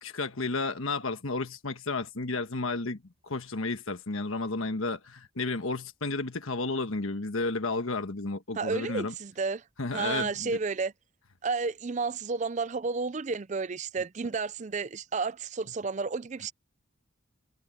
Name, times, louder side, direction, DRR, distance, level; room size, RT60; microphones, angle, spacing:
voice 1, 0.0-9.1 9.8-10.6, left 3 dB, 75° left, 1.3 m, -32 dB
voice 2, 8.6-9.6 9.9-10.9 11.4-16.5, right 4 dB, 35° right, 0.4 m, -31 dB
head